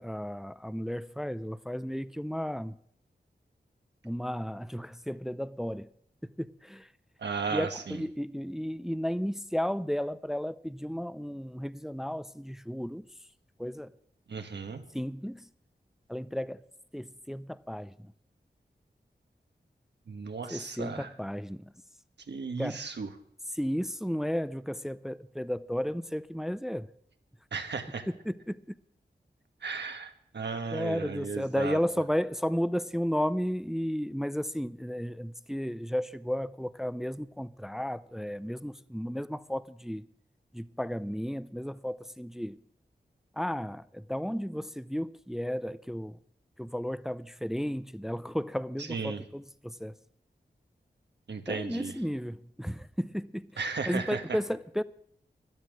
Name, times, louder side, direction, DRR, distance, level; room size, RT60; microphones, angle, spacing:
voice 1, 0.0-2.8 4.0-5.9 6.2-6.9 7.5-13.1 13.6-13.9 14.9-15.5 16.1-16.6 16.9-18.1 20.5-21.7 22.6-22.8 23.5-26.9 28.2-28.8 30.7-40.1 40.5-42.6 43.4-46.2 46.6-49.9 51.5-54.8, equal, ahead, 0.5 m, -33 dB
voice 2, 7.2-8.0 14.3-14.8 20.1-21.1 22.3-23.1 27.5-28.1 29.6-31.8 48.9-49.2 51.3-51.9 53.6-54.2, right 5 dB, 80° right, 1.5 m, -35 dB
12.5 x 12.5 x 6.3 m
wide cardioid pair, 70°, 18 cm